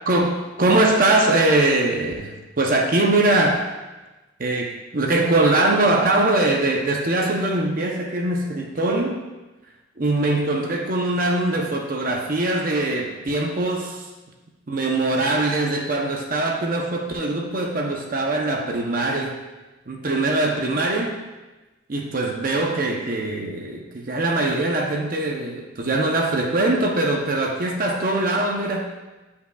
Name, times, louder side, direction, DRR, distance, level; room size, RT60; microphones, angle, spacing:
voice 1, 0.1-3.7 4.4-9.2 10.0-14.1 14.7-19.4 19.9-21.2 21.9-28.9, right 2 dB, 45° right, 1 dB, 0.7 m, -22 dB
10.0 x 5.5 x 2.3 m, 1.1 s
head